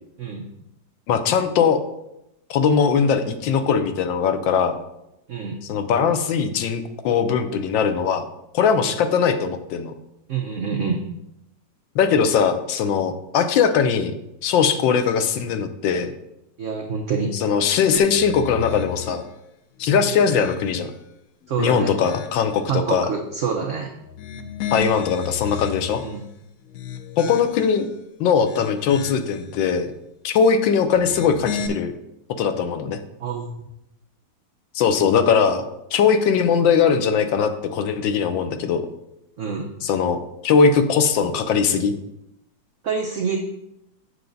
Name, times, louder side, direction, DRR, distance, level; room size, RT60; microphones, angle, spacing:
voice 1, 1.1-1.8 2.5-4.8 5.6-8.3 8.5-9.9 11.9-14.1 14.4-16.1 17.3-19.2 19.8-20.9 21.6-23.1 24.7-26.0 27.2-27.9 28.2-29.9 30.2-31.9 32.4-33.0 34.7-35.6 35.9-38.9 39.8-41.9, left 6 dB, 85° left, 9 dB, 1.5 m, -20 dB
voice 2, 10.3-11.0 16.6-17.3 21.5-22.0 22.7-23.9 26.0-26.2 33.2-33.5 39.4-39.7 42.8-43.4, right 6 dB, 55° right, 2 dB, 0.8 m, -26 dB
sound 1, 18.0-19.3 19.8-20.9 21.4-22.5 24.0-26.2 26.7-27.8 28.3-29.4 30.9-31.7, left 8 dB, 70° left, 0.8 m, -34 dB
8.1 x 6.2 x 3.9 m, 0.85 s
omnidirectional pair, 2.0 m